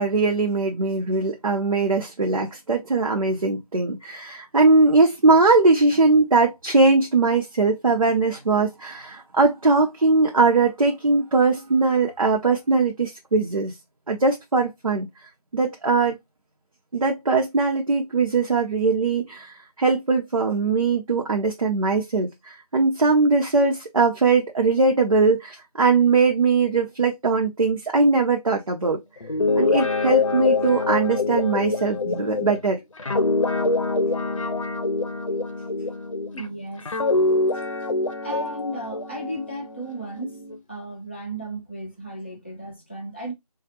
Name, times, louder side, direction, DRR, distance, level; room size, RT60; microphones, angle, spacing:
voice 1, 0.0-13.7 14.1-15.1 15.5-16.2 16.9-29.0 29.5-32.8, right 3 dB, 60° right, 0.7 m, -20 dB
Guitar, 29.2-36.4 36.9-40.6, left 3 dB, 55° left, 0.7 m, -25 dB
voice 2, 36.3-36.8 38.2-40.4 40.7-43.3, right 1 dB, 20° left, 0.6 m, -34 dB
3.6 x 2.4 x 2.7 m
figure-of-eight pair, 170°, 20 cm